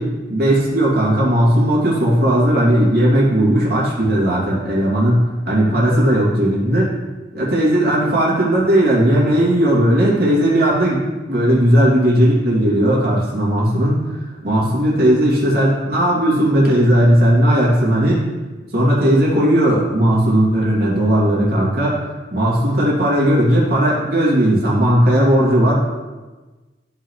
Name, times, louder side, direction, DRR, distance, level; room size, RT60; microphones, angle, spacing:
voice 1, 0.0-5.2 5.5-6.9 7.3-11.0 11.3-14.2 14.4-18.2 18.7-22.0 22.3-25.8, right 1 dB, 55° right, -6 dB, 2.8 m, -16 dB
14.0 x 5.7 x 3.2 m, 1.2 s
head